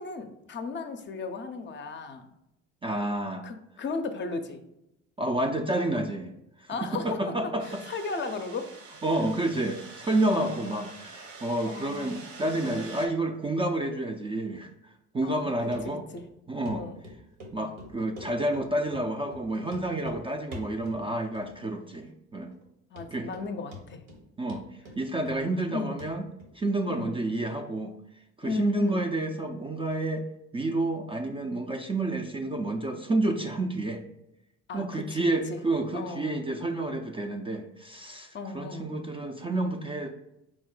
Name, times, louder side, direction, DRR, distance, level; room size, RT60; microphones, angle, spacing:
voice 1, 0.0-2.3 3.4-4.6 6.7-7.2 7.6-8.8 9.2-9.3 10.3-10.8 11.7-12.2 12.5-12.9 15.2-15.7 16.1-16.2 16.7-17.0 22.9-24.0 25.7-26.0 26.9-27.2 28.4-29.1 34.7-35.6 35.9-36.4 38.3-38.9, left 4 dB, 35° left, 8 dB, 0.5 m, -36 dB
voice 2, 2.8-3.5 5.2-6.3 6.6-7.8 9.0-16.0 16.5-16.9 17.5-22.5 23.1-23.3 24.4-24.6 25.0-26.2 26.5-27.9 28.4-30.3 30.5-34.0 34.7-40.1, right 2 dB, 15° right, 3 dB, 0.3 m, -29 dB
sound 1, 7.6-13.1, right 4 dB, 60° right, 0.9 m, -46 dB
Run, 15.7-15.8 16.2-16.3 16.6-16.8 17.0-17.5 17.8-18.6 18.9-19.0 19.3-19.4 19.7-20.2 20.5-21.0 21.3-21.8 22.1-22.2 22.6-22.7 23.0-23.5 23.7-24.2 24.5-25.7 26.0-26.1 26.4-26.5, left 1 dB, 80° right, 1.1 m, -44 dB
4.7 x 2.1 x 3.8 m, 0.85 s
hypercardioid pair, 65°, 33 cm